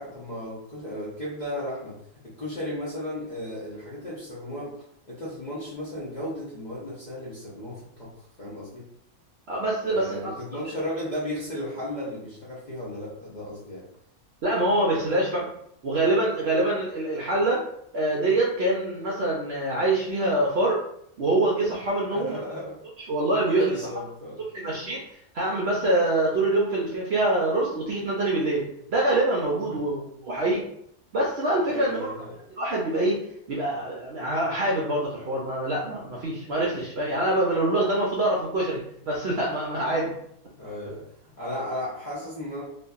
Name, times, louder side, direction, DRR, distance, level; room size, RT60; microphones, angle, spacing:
voice 1, 0.0-2.0 2.2-4.7 5.1-8.9 9.9-13.8 22.1-22.8 23.5-24.8 29.9-30.0 31.6-32.3 40.6-42.6, left 1 dB, 45° left, -8 dB, 0.6 m, -35 dB
voice 2, 9.5-10.3 14.4-15.5 15.8-17.6 17.9-20.8 21.2-22.6 23.1-23.8 24.5-25.0 25.3-30.6 31.1-32.1 32.6-33.2 33.5-40.1 40.9-41.0, right 2 dB, 65° right, -4 dB, 0.6 m, -25 dB
2.6 x 2.5 x 2.3 m, 0.71 s
omnidirectional pair, 1.5 m